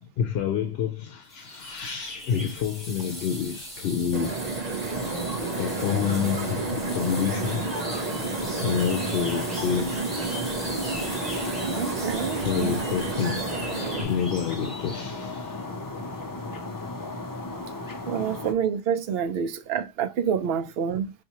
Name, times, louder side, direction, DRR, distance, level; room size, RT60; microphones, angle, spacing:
voice 1, 0.0-4.4 5.0-5.1 5.6-7.7 8.6-9.9 12.4-13.4 14.0-16.3, left 8 dB, 75° left, 0.8 m, -28 dB
sound 1, 1.3-15.2, equal, ahead, 2.3 m, -39 dB
sound 2, 4.1-14.0, right 4 dB, 45° right, 0.8 m, -31 dB
sound 3, 4.9-18.5, left 2 dB, 30° left, 0.4 m, -36 dB
voice 2, 11.6-12.8 18.1-21.1, right 7 dB, 75° right, 0.8 m, -28 dB
5.5 x 2.6 x 2.9 m
omnidirectional pair, 1.0 m